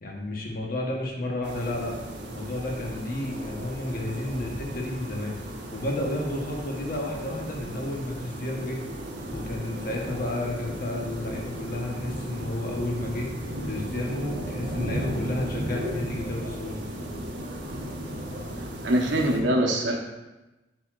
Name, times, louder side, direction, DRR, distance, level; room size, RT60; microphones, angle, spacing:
voice 1, 0.0-2.0 2.3-5.4 5.7-8.8 9.3-13.3 13.6-16.8, left 1 dB, 55° left, 0 dB, 1.1 m, -31 dB
sound 1, 1.4-19.4, equal, 65° right, 1.2 m, -35 dB
voice 2, 18.5-20.0, right 1 dB, 85° right, 1 dB, 1.0 m, -24 dB
10.0 x 4.2 x 2.5 m, 1.1 s
head